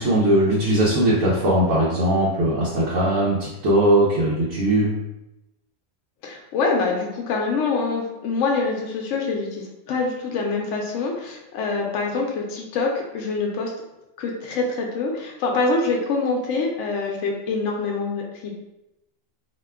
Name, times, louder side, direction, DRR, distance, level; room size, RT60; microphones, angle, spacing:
voice 1, 0.0-4.9, right 1 dB, 85° right, -7 dB, 1.1 m, -20 dB
voice 2, 6.2-13.7 14.2-18.5, left 3 dB, 75° left, 0 dB, 0.9 m, -25 dB
2.8 x 2.2 x 3.3 m, 0.92 s
omnidirectional pair, 1.3 m